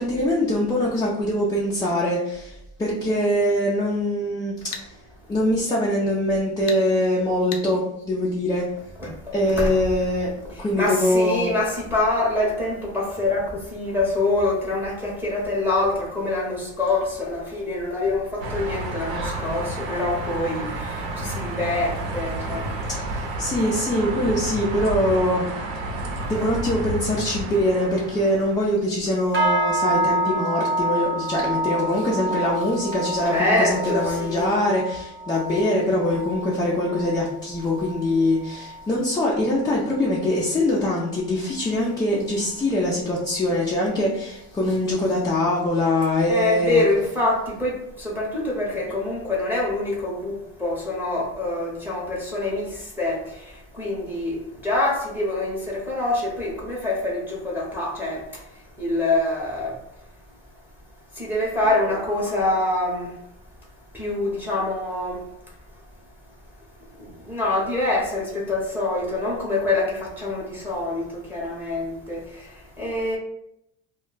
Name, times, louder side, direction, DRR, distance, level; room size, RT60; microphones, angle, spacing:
voice 1, 0.0-4.9 5.3-8.6 9.3-10.3 10.6-11.5 23.0-25.5 26.3-46.8, left 1 dB, 10° left, 0.3 m, -23 dB
sound 1, 4.7-4.9 6.7-6.8 7.5-7.7, left 7 dB, 60° left, 0.5 m, -33 dB
voice 2, 10.8-22.7 33.3-34.7 46.3-54.4 54.6-58.4 58.8-59.8 61.2-63.1 63.9-65.2 67.0-72.5 72.8-73.2, left 2 dB, 5° right, 0.7 m, -25 dB
sound 2, 18.4-28.7, right 2 dB, 80° right, 0.8 m, -31 dB
sound 3, 29.3-38.9 39.2-39.6 40.0-40.3 40.9-41.0, right 1 dB, 35° right, 0.7 m, -28 dB
2.2 x 2.1 x 3.8 m
cardioid pair, 130°, 34 cm